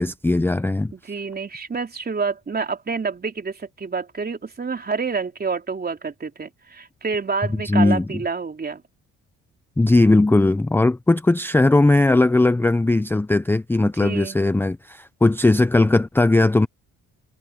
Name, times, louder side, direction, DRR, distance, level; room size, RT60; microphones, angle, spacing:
voice 1, 0.0-0.9 7.5-8.1 9.8-16.7, left 2 dB, 5° left, 0.5 m, -18 dB
voice 2, 0.9-8.8 13.8-14.4, right 4 dB, 30° right, 3.8 m, -28 dB
cardioid pair, 90°, 30 cm